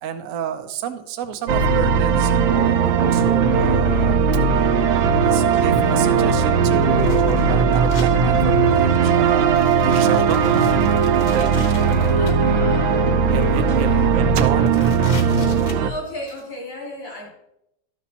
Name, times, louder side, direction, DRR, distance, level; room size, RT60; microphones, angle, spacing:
voice 1, 0.0-4.2 5.2-10.7 11.1-12.6 13.3-14.8, right 7 dB, 60° right, 8 dB, 0.9 m, -29 dB
sound 1, 1.5-15.2, right 2 dB, 25° right, 1.0 m, -26 dB
sound 2, 1.5-15.9, right 6 dB, 90° right, 1.4 m, -18 dB
sound 3, 5.5-5.6 6.8-8.1 8.6-8.9 9.4-12.3 13.1-13.7 14.0-14.1 14.4-16.4, left 4 dB, 55° left, 1.4 m, -41 dB
voice 2, 12.2-12.9 15.8-17.3, left 1 dB, 85° left, -2 dB, 3.2 m, -34 dB
12.5 x 6.1 x 2.9 m, 0.81 s
omnidirectional pair, 2.1 m